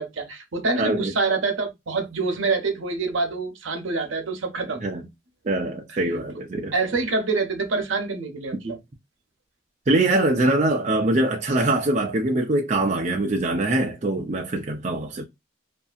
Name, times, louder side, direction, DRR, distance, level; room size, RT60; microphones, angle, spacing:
voice 1, 0.0-4.8 6.7-8.8, right 3 dB, 85° right, 0.7 m, -26 dB
voice 2, 0.8-1.1 4.8-5.0 5.4-6.7 9.9-15.2, right 2 dB, 35° right, 0.4 m, -23 dB
2.6 x 2.4 x 2.4 m
head